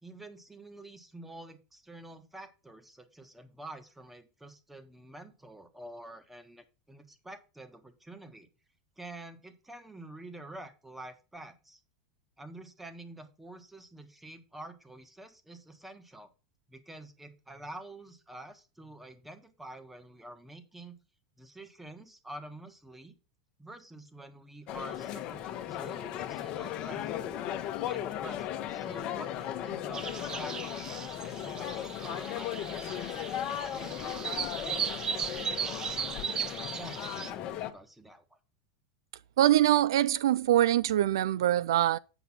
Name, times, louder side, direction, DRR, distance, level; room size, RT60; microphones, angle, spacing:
voice 1, 0.0-8.5 9.0-11.8 12.4-16.3 16.7-20.9 21.4-23.2 23.6-27.3 27.8-33.2 33.6-36.1 36.8-38.4, right 1 dB, 5° right, 1.4 m, -48 dB
sound 1, 24.7-37.7, left 11 dB, 45° left, 1.1 m, -37 dB
sound 2, 29.9-37.3, right 7 dB, 30° right, 0.8 m, -37 dB
voice 2, 39.4-42.0, right 13 dB, 80° right, 0.3 m, -24 dB
8.1 x 5.0 x 5.9 m
hypercardioid pair, 105°, 2 cm